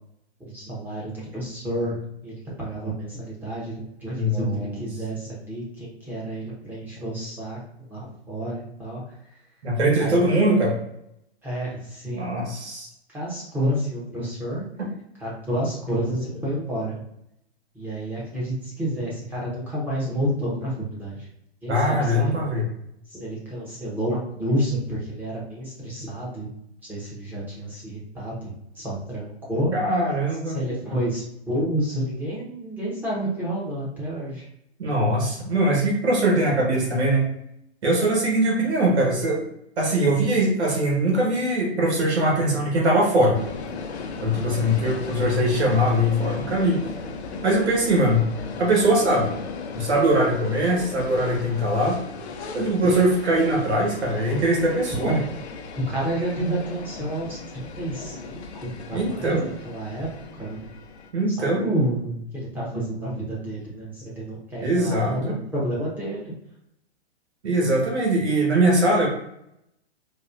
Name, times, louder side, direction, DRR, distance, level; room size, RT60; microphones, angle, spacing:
voice 1, 0.4-7.6 7.9-9.2 10.0-10.2 11.4-12.3 13.1-14.7 15.2-17.0 17.7-21.3 21.6-22.4 23.1-26.5 26.8-29.7 30.5-34.5 52.8-53.1 55.0-55.3 55.9-60.1 60.4-60.6 61.3-66.3, right 1 dB, 5° right, -6 dB, 0.8 m, -30 dB
voice 2, 4.2-4.7 9.6-10.8 12.1-12.9 21.7-22.7 29.7-30.6 34.8-37.3 37.8-39.5 39.8-43.4 44.2-46.9 47.4-48.3 48.6-49.3 49.7-52.0 52.5-55.2 58.9-59.5 61.1-61.6 64.6-65.3 67.4-69.1, right 1 dB, 90° right, -2 dB, 1.4 m, -21 dB
sound 1, 43.3-61.1, left 4 dB, 80° left, 0.7 m, -36 dB
4.0 x 2.4 x 2.5 m, 0.79 s
hypercardioid pair, 150°, 33 cm